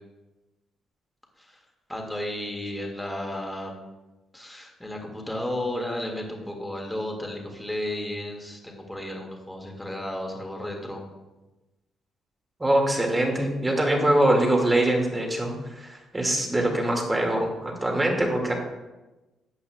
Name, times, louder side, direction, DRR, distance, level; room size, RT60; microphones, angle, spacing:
voice 1, 1.9-3.7 4.3-11.0, left 1 dB, 5° left, 0 dB, 2.0 m, -33 dB
voice 2, 12.6-18.5, right 1 dB, 15° right, 1 dB, 2.1 m, -23 dB
13.0 x 8.3 x 2.3 m, 1.1 s
cardioid pair, 90°, 0 cm